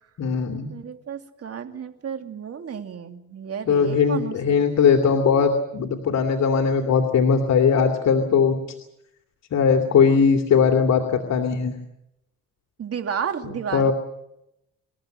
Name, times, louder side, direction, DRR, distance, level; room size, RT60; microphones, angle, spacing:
voice 1, 0.2-0.7 3.7-8.6 9.5-11.8 13.4-13.9, left 6 dB, 60° left, 4 dB, 2.6 m, -20 dB
voice 2, 0.7-4.6 12.8-13.9, right 7 dB, 50° right, 6 dB, 2.8 m, -32 dB
27.0 x 14.5 x 9.2 m, 0.83 s
cardioid pair, 90°, 30 cm